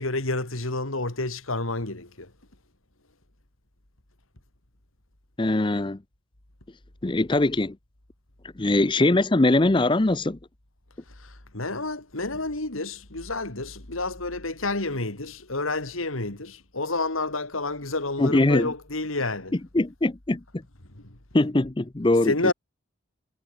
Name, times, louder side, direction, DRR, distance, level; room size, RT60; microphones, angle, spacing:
voice 1, 0.0-2.3 11.5-19.6 21.0-21.1 22.3-22.5, left 2 dB, 90° left, 3.5 m, -29 dB
voice 2, 5.4-6.0 7.0-7.8 8.6-10.4 18.2-18.7 19.7-20.6 21.3-22.5, left 2 dB, 25° left, 0.6 m, -22 dB
head